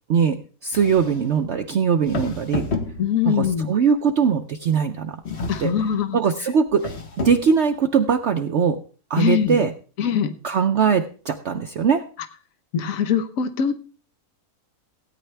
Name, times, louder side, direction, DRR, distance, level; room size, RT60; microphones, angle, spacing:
voice 1, 0.1-2.7 3.2-5.2 5.6-5.7 6.1-6.9 7.2-8.8 9.1-9.7 10.4-12.0, right 6 dB, 60° right, 5 dB, 0.9 m, -21 dB
sound 1, 0.7-1.4 2.1-3.4 5.2-6.0 6.7-7.6, left 3 dB, 45° left, 1.3 m, -30 dB
voice 2, 3.0-3.7 5.5-6.2 9.2-9.6 10.0-10.3 12.7-13.7, left 8 dB, 60° left, 10 dB, 1.3 m, -22 dB
17.0 x 9.4 x 3.3 m, 0.39 s
omnidirectional pair, 1.6 m